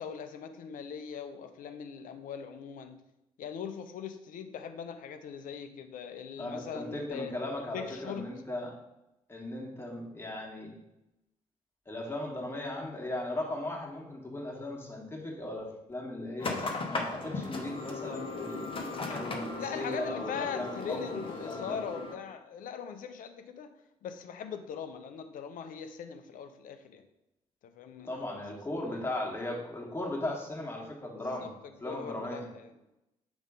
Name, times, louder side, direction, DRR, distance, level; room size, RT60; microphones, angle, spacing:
voice 1, 0.0-3.0 3.4-7.3 7.7-8.3 19.6-23.7 24.0-27.0 27.7-28.4 31.4-31.5 31.8-32.7, left 7 dB, 55° left, 0.6 m, -40 dB
voice 2, 6.4-8.8 9.3-10.7 11.9-18.7 19.1-21.8 28.1-31.5 31.8-32.5, left 1 dB, 15° left, 1.6 m, -37 dB
sound 1, 16.4-22.1, left 3 dB, 30° left, 0.9 m, -37 dB
7.0 x 3.6 x 3.7 m
figure-of-eight pair, 45°, 17 cm